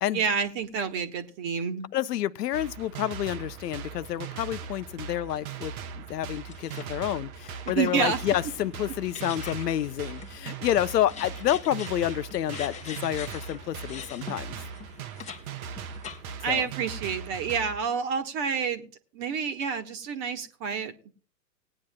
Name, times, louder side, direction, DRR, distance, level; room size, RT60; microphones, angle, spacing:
voice 1, 0.1-1.9 7.7-8.2 16.4-20.9, right 6 dB, 35° right, 1.4 m, -29 dB
voice 2, 1.9-5.7 6.1-14.6 16.5-16.6, left 12 dB, 70° left, 0.7 m, -29 dB
sound 1, 2.5-17.8, right 7 dB, 55° right, 1.0 m, -39 dB
sound 2, 6.5-7.1 7.4-15.4 15.8-16.5, left 7 dB, 15° left, 1.0 m, -43 dB
19.5 x 9.8 x 2.3 m
hypercardioid pair, 110°, 50 cm